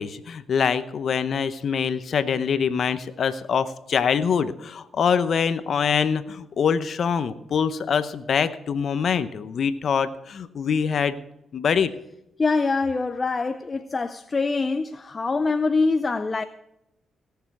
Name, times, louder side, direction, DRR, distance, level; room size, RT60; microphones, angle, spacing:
voice 1, 0.0-11.2 11.5-11.9, left 6 dB, 60° left, 0.9 m, -24 dB
voice 2, 12.4-16.4, left 3 dB, 35° left, 0.5 m, -24 dB
17.5 x 6.9 x 6.1 m
cardioid pair, 75°, 0 cm